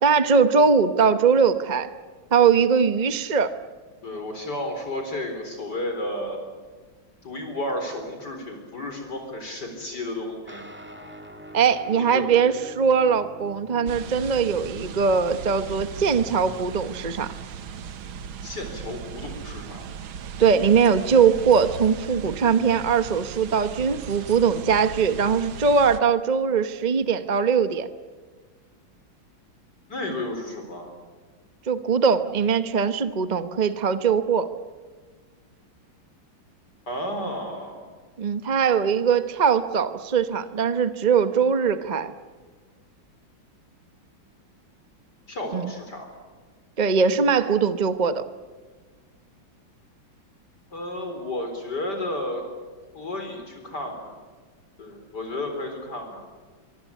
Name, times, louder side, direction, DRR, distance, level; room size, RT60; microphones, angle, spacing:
voice 1, 0.0-1.9 2.3-3.5 11.5-17.3 20.4-27.9 31.7-34.5 38.2-42.1 45.5-45.7 46.8-48.2, right 6 dB, 35° right, 11 dB, 0.6 m, -21 dB
voice 2, 4.0-6.4 7.2-10.7 12.1-12.3 18.4-19.9 29.9-30.9 36.9-37.9 45.3-46.1 50.7-52.4 52.9-54.2 54.8-56.2, left 1 dB, 55° left, 4 dB, 4.5 m, -32 dB
sound 1, 10.5-18.3, equal, 5° right, 2.0 m, -47 dB
sound 2, 13.9-26.0, right 7 dB, 85° right, 2.0 m, -38 dB
25.0 x 24.5 x 8.4 m, 1.4 s
omnidirectional pair, 2.2 m